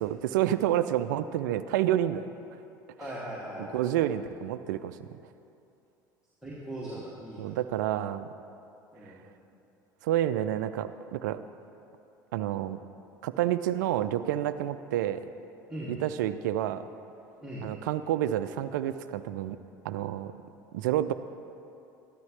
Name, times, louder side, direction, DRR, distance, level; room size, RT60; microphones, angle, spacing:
voice 1, 0.0-2.3 3.6-5.1 7.4-8.3 10.0-11.4 12.3-12.8 13.2-15.2 15.9-16.9 17.6-19.6 19.8-20.3 20.7-21.1, right 12 dB, 70° right, 13 dB, 0.4 m, -29 dB
voice 2, 3.0-3.7 6.4-7.6 8.9-9.2 15.7-16.0 17.4-17.7, right 1 dB, 5° right, -7 dB, 2.3 m, -39 dB
13.5 x 12.0 x 3.2 m, 2.8 s
hypercardioid pair, 65°, 10 cm